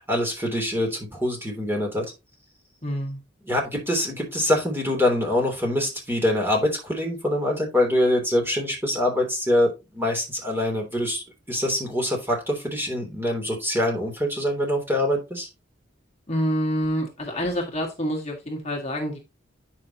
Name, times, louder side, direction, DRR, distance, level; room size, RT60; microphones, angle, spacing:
voice 1, 0.0-2.1 3.4-15.5, left 1 dB, 10° right, 3.3 m, -24 dB
voice 2, 2.8-3.2 16.3-19.2, equal, 35° left, 1.9 m, -27 dB
9.7 x 6.1 x 2.9 m
head